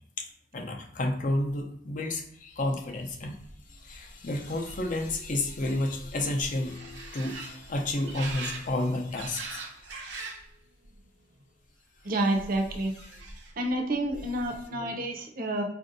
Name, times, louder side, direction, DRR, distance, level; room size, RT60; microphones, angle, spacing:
voice 1, 0.5-3.4 3.7-9.8 12.8-13.2, left 1 dB, 50° left, 3 dB, 0.6 m, -31 dB
sound 1, 3.4-10.5 10.8-11.4 12.3-13.7 14.0-14.6, right 3 dB, 85° right, 0.7 m, -43 dB
voice 2, 12.0-12.9 13.6-15.6, right 1 dB, 55° right, 3 dB, 0.6 m, -29 dB
4.5 x 2.6 x 2.6 m, 0.68 s
head